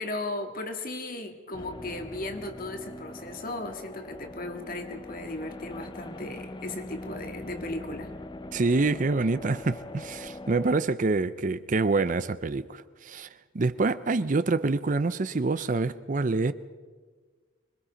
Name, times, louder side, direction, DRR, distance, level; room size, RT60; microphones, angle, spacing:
voice 1, 0.0-8.1, left 2 dB, 45° left, 6 dB, 1.8 m, -36 dB
sound 1, 1.5-10.8, left 2 dB, 20° left, 0.6 m, -42 dB
voice 2, 8.5-13.3 13.5-16.5, right 3 dB, 40° right, 14 dB, 0.5 m, -26 dB
25.5 x 21.5 x 5.1 m, 1.5 s
head